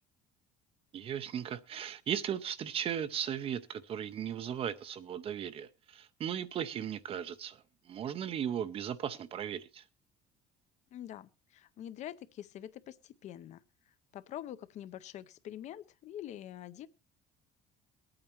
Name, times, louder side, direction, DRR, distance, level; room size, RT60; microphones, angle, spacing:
voice 1, 0.9-9.8, right 9 dB, 35° right, 0.5 m, -37 dB
voice 2, 10.9-13.6 14.1-16.9, left 11 dB, 40° left, 0.6 m, -45 dB
23.0 x 8.8 x 2.9 m
cardioid pair, 170°, 17 cm